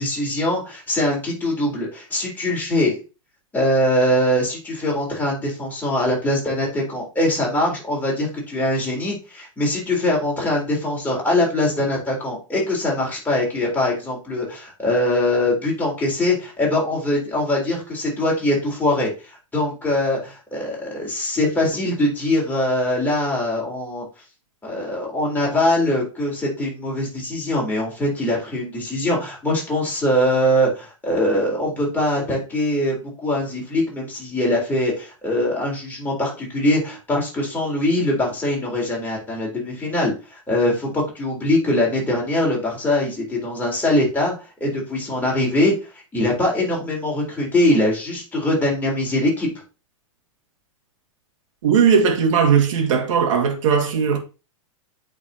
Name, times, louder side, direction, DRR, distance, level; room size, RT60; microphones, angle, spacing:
voice 1, 0.0-3.0 3.5-24.1 24.6-44.3 44.6-45.8 46.1-49.5, left 1 dB, 10° left, 3.7 m, -22 dB
voice 2, 51.6-54.2, right 6 dB, 65° right, 1.9 m, -18 dB
8.5 x 4.2 x 2.8 m
hypercardioid pair, 110°, 18 cm